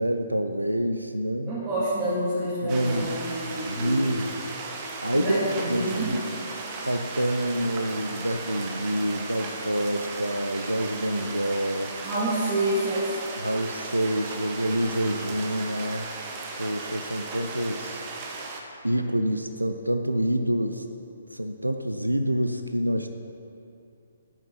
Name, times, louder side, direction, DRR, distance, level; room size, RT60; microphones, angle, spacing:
voice 1, 0.0-1.5 2.6-3.1 3.4-4.4 5.0-5.4 5.7-6.2 6.8-11.9 13.4-16.1 16.6-18.0 18.8-20.8 21.3-23.1, right 1 dB, 85° right, 7 dB, 0.7 m, -27 dB
voice 2, 1.5-4.1 5.1-6.2 12.0-13.2, right 1 dB, 10° right, -12 dB, 2.5 m, -28 dB
sound 1, 2.7-18.6, right 3 dB, 25° right, 1.3 m, -36 dB
11.0 x 8.9 x 5.8 m, 2.6 s
figure-of-eight pair, 130°, 0 cm